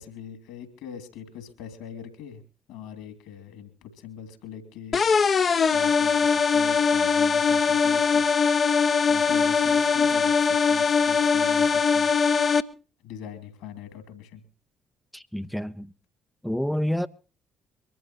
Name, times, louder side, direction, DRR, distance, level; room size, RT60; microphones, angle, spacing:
voice 1, 0.0-2.4 2.7-5.0 5.7-8.2 8.6-12.1 13.0-14.4, left 8 dB, 65° left, 2.8 m, -42 dB
sound 1, 4.9-12.6, left 5 dB, 40° left, 0.8 m, -21 dB
voice 2, 15.1-15.9 16.4-17.1, equal, ahead, 0.6 m, -28 dB
23.5 x 14.0 x 3.1 m
figure-of-eight pair, 45°, 0 cm